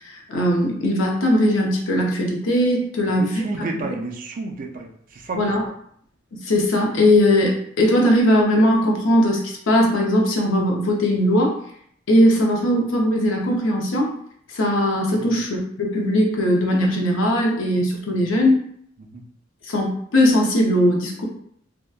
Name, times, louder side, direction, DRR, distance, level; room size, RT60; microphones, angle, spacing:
voice 1, 0.1-3.9 5.3-5.6 6.3-11.5 12.1-14.1 14.5-18.5 19.7-21.2, equal, 85° left, 0 dB, 0.6 m, -19 dB
voice 2, 3.1-5.5 15.2-15.4 18.1-18.2 19.0-19.2, right 3 dB, 45° right, 3 dB, 0.4 m, -31 dB
2.7 x 2.1 x 2.3 m, 0.65 s
head